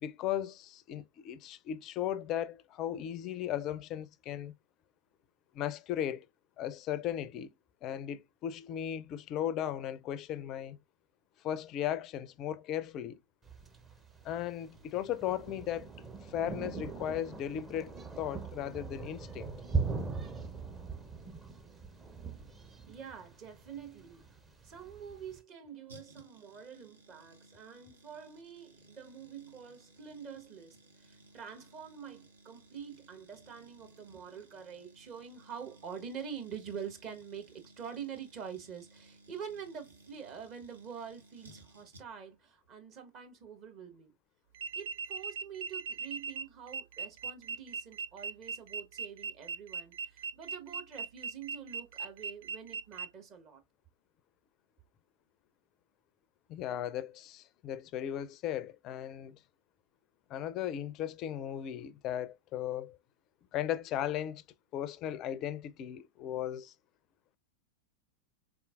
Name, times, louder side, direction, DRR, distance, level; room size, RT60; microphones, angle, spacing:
voice 1, 0.0-4.5 5.5-6.3 6.6-7.5 7.8-10.8 11.4-13.2 14.2-15.9 16.2-19.5 56.5-59.4 60.3-63.0 63.5-64.4 64.7-66.7, left 10 dB, 35° left, 0.4 m, -36 dB
Thunder, 13.4-25.4, right 4 dB, 15° right, 0.7 m, -40 dB
voice 2, 22.8-24.3 24.6-44.1 44.7-53.6, right 7 dB, 35° right, 1.1 m, -46 dB
sound 1, 25.9-42.4 42.6-42.7, right 1 dB, 75° right, 1.0 m, -60 dB
sound 2, 44.5-53.1, right 5 dB, 55° right, 0.4 m, -39 dB
4.3 x 3.5 x 2.3 m
figure-of-eight pair, 90°, 0 cm